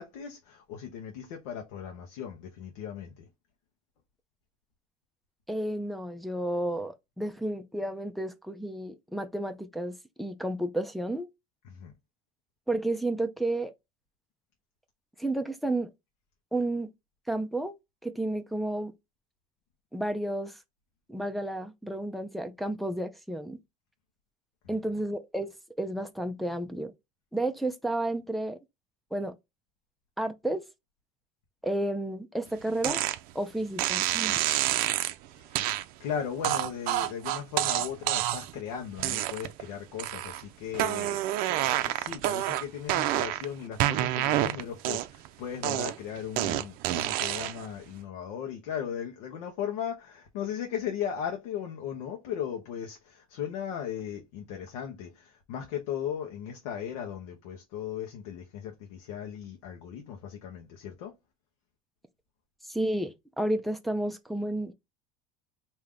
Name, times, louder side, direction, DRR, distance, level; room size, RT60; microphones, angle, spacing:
voice 1, 0.0-3.3 11.6-11.9 24.6-24.8 35.3-41.2 41.5-61.2, left 8 dB, 85° left, 1.0 m, -37 dB
voice 2, 5.5-11.3 12.7-13.7 15.2-15.9 16.5-16.9 17.3-17.7 18.0-18.9 19.9-20.6 21.1-23.6 24.7-26.9 27.3-28.6 29.1-29.4 30.2-30.6 31.6-33.0 33.3-34.4 62.7-64.7, right 1 dB, ahead, 0.5 m, -31 dB
sound 1, 32.8-33.2 33.8-35.1 35.5-35.8 36.4-38.6 39.0-39.6 40.0-40.4 40.7-43.5 43.8-45.3 45.6-47.7, right 14 dB, 60° right, 0.5 m, -28 dB
3.7 x 2.8 x 3.3 m
cardioid pair, 135°, 17 cm